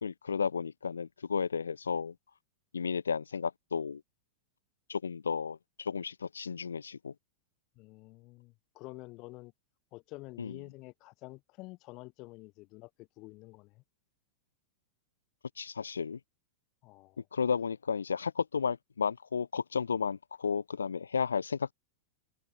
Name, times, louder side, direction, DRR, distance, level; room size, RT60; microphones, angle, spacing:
voice 1, 0.0-2.1 2.7-4.0 4.9-7.1 10.4-10.6 15.6-16.2 17.3-21.7, left 6 dB, 80° left, 1.4 m, -33 dB
voice 2, 7.8-9.5 9.9-13.8 16.8-17.2, left 22 dB, 45° left, 3.3 m, -49 dB
figure-of-eight pair, 95°, 0 cm